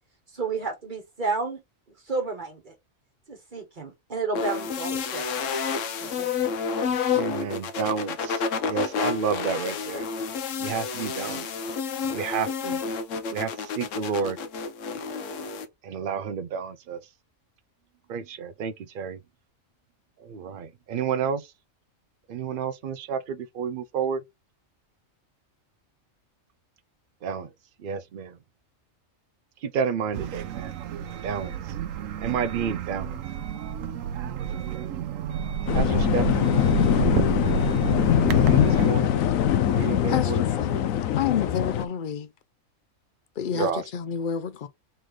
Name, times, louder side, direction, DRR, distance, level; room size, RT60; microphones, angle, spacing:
voice 1, 0.3-1.6 2.1-2.8 3.3-5.4 6.0-6.5, right 4 dB, 40° right, 1.2 m, -31 dB
sound 1, 4.3-15.7, left 5 dB, 70° left, 1.1 m, -30 dB
voice 2, 7.1-8.4 8.7-10.0 10.6-11.5 12.1-12.8 13.3-14.4 15.8-17.0 18.1-19.2 20.2-21.4 22.3-24.2 27.2-27.5 27.8-28.3 29.6-30.7 31.2-31.5 32.2-33.1 35.7-36.5 38.2-39.1 39.7-40.5 43.5-43.8, right 6 dB, 60° right, 0.5 m, -30 dB
sound 2, 30.1-38.9, right 8 dB, 75° right, 1.0 m, -30 dB
sound 3, 35.7-41.8, left 10 dB, 90° left, 1.0 m, -22 dB
voice 3, 40.1-40.8 41.2-42.3 43.4-44.7, left 8 dB, 55° left, 0.5 m, -29 dB
3.9 x 3.2 x 3.7 m
omnidirectional pair, 1.4 m